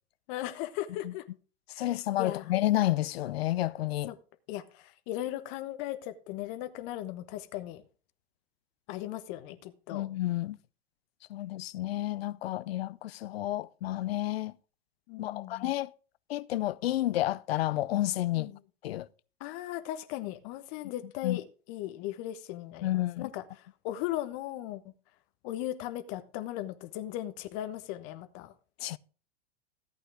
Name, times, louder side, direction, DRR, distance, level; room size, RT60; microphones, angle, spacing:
voice 1, 0.3-1.2 1.7-1.8 2.2-2.5 4.1-4.2 4.5-7.8 8.9-10.1 15.1-15.7 18.3-18.6 19.4-24.8 25.4-28.5, left 13 dB, 55° left, 1.3 m, -37 dB
voice 2, 1.8-4.1 9.9-10.6 11.3-14.5 15.2-15.9 16.3-18.5 18.8-19.1 21.2-21.4 22.8-23.3 28.8-29.0, left 15 dB, 80° left, 0.6 m, -30 dB
14.0 x 8.6 x 3.5 m
hypercardioid pair, 100°, 30 cm